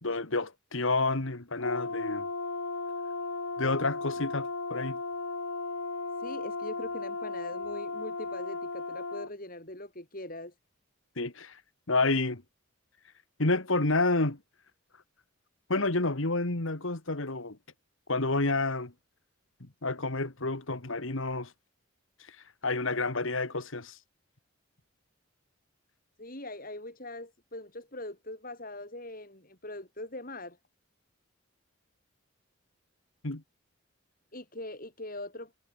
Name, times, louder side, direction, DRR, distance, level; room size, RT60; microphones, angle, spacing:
voice 1, 0.0-2.3 3.6-5.0 11.2-11.6 11.9-12.4 13.4-14.4 15.7-17.6 18.1-18.9 19.6-21.5 22.6-24.0 33.2-33.4, left 2 dB, 65° left, 2.0 m, -29 dB
Brass instrument, 1.6-9.3, left 3 dB, 85° left, 2.3 m, -35 dB
voice 2, 6.2-10.5 26.2-30.6 34.3-35.5, left 1 dB, 40° left, 5.9 m, -42 dB
head